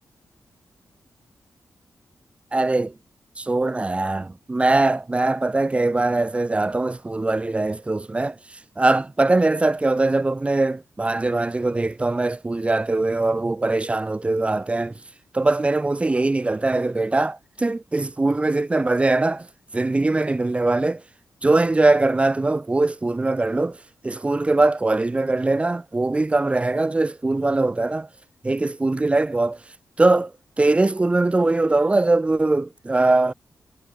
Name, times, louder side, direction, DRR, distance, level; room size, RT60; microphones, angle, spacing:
voice 1, 2.5-2.9 3.4-15.0 15.3-19.5 19.7-21.0 21.4-23.8 24.0-28.1 28.4-29.6 30.0-30.3 30.6-33.3, right 2 dB, 20° right, 2.5 m, -21 dB
wide cardioid pair, 150°, 6 cm